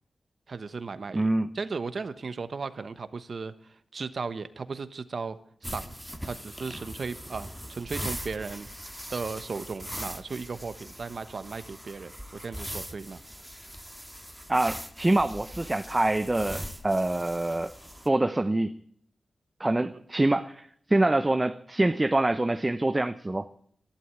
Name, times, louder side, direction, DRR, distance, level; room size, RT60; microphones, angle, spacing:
voice 1, 0.5-1.3 1.5-5.4 5.6-6.0 6.2-8.7 9.1-12.1 12.4-13.2 19.8-19.9, right 4 dB, 60° right, 12 dB, 1.1 m, -36 dB
voice 2, 1.1-1.5 14.5-17.7 18.1-18.8 19.6-23.5, right 2 dB, 25° right, 11 dB, 0.7 m, -25 dB
sound 1, 5.6-18.1, equal, 5° right, 1.7 m, -41 dB
12.0 x 11.5 x 9.3 m, 0.64 s
cardioid pair, 50°, 0 cm